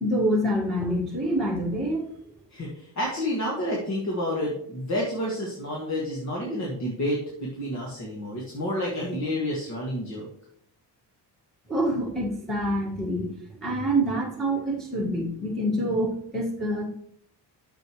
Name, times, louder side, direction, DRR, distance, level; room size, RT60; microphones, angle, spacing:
voice 1, 0.0-2.1 11.7-16.8, right 1 dB, ahead, -6 dB, 1.9 m, -26 dB
voice 2, 2.5-10.3, left 1 dB, 40° left, -3 dB, 2.0 m, -29 dB
9.1 x 7.1 x 3.2 m, 0.68 s
cardioid pair, 145°, 41 cm